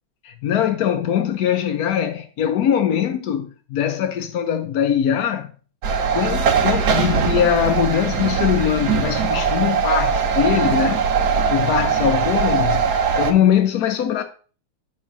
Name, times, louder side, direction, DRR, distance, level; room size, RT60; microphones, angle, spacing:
voice 1, 0.2-5.5 6.1-11.1 11.5-14.2, left 9 dB, 65° left, 1.0 m, -21 dB
sound 1, 5.8-13.3, right 6 dB, 55° right, 1.3 m, -20 dB
8.8 x 3.7 x 6.0 m
omnidirectional pair, 2.4 m